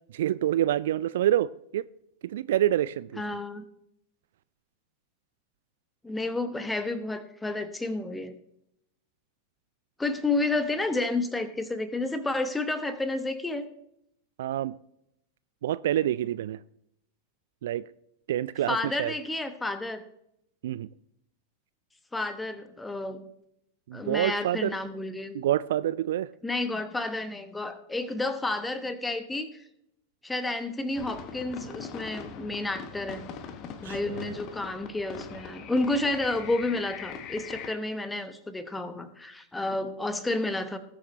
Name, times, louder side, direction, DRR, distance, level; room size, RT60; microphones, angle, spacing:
voice 1, 0.1-1.5 1.7-1.8 2.3-3.2 14.4-14.8 15.6-16.6 17.6-17.8 18.3-19.1 20.6-20.9 23.9-24.7 25.3-26.3 33.8-34.0, right 12 dB, 60° right, 0.3 m, -27 dB
voice 2, 3.2-3.6 6.0-8.4 10.0-13.7 18.7-20.0 22.1-23.2 23.9-25.4 26.4-29.5 30.2-33.3 33.8-40.8, left 2 dB, 10° left, 1.3 m, -30 dB
sound 1, 30.9-37.7, left 7 dB, 35° left, 1.2 m, -41 dB
19.5 x 7.8 x 3.2 m
figure-of-eight pair, 90°, 0 cm